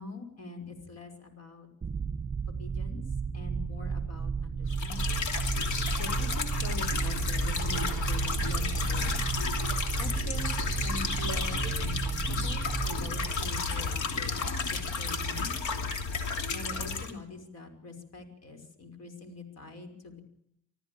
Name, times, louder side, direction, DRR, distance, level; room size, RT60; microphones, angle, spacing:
voice 1, 0.0-1.7 2.5-3.0 3.3-5.2 5.9-9.3 10.0-10.4 10.8-15.7 16.5-20.2, left 3 dB, 55° left, 7 dB, 5.7 m, -43 dB
sound 1, 1.8-14.8, right 6 dB, 25° right, 1.8 m, -33 dB
sound 2, 4.7-17.1, left 4 dB, 75° left, 3.2 m, -32 dB
25.5 x 14.0 x 9.0 m, 0.75 s
cardioid pair, 90°, 30 cm